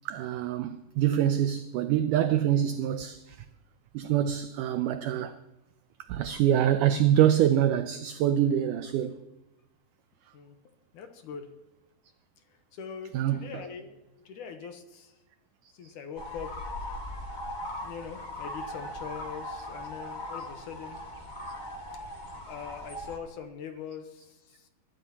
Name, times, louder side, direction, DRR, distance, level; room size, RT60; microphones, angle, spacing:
voice 1, 0.1-3.4 3.9-5.4 6.1-9.2 13.1-13.5 15.8-15.9, right 11 dB, 90° right, 1.8 m, -25 dB
voice 2, 10.9-11.5 12.5-15.2 15.7-16.5 17.8-21.0 22.4-24.7, left 6 dB, 70° left, 2.2 m, -42 dB
sound 1, 16.2-23.2, left 1 dB, 35° left, 0.7 m, -39 dB
23.0 x 12.5 x 2.9 m
omnidirectional pair, 4.3 m